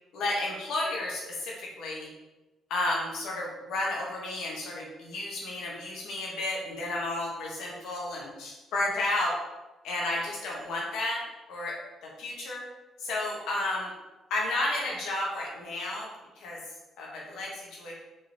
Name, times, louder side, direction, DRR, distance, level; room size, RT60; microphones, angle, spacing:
voice 1, 0.1-2.1 2.7-9.4 9.8-11.2 11.5-12.7 13.0-13.9 14.3-16.1 16.3-16.6 17.0-17.9, left 2 dB, 85° left, -3 dB, 1.3 m, -32 dB
4.5 x 3.1 x 3.3 m, 1.1 s
cardioid pair, 90°, 0 cm